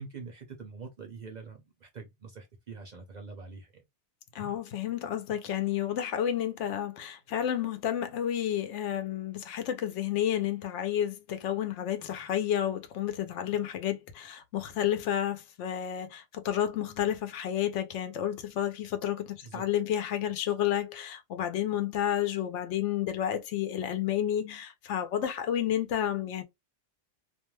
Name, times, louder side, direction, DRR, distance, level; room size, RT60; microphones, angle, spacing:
voice 1, 0.0-3.8 19.4-19.6, right 4 dB, 50° right, 0.5 m, -44 dB
voice 2, 4.3-26.4, left 10 dB, 80° left, 0.9 m, -31 dB
2.4 x 2.2 x 3.0 m
omnidirectional pair, 1.2 m